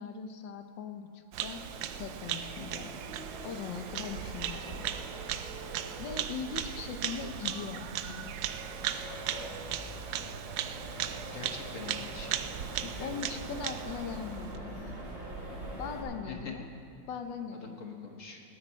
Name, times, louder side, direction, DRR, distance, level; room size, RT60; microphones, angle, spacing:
voice 1, 0.0-1.6 2.0-2.9 3.4-4.8 6.0-8.3 13.0-14.9 15.8-16.7 17.1-17.9, left 6 dB, 70° left, 7 dB, 1.4 m, -40 dB
Bird vocalization bird call bird song, 1.3-14.6, right 10 dB, 80° right, 0.8 m, -38 dB
Accelerating revving vroom, 1.4-16.0, right 1 dB, 65° right, 3.7 m, -44 dB
voice 2, 11.3-12.3 12.7-13.1 16.3-16.5 17.5-18.4, left 5 dB, 45° left, 2 dB, 1.2 m, -44 dB
18.0 x 12.0 x 4.4 m, 2.4 s
omnidirectional pair, 2.2 m